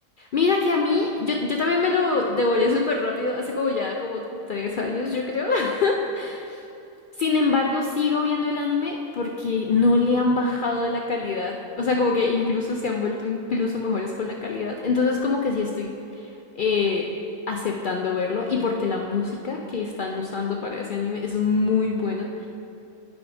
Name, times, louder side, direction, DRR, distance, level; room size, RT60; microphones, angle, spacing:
voice 1, 0.2-6.6 7.2-17.1 17.5-22.5, left 4 dB, 65° left, 1 dB, 0.5 m, -24 dB
8.3 x 5.1 x 4.8 m, 2.8 s
omnidirectional pair, 1.3 m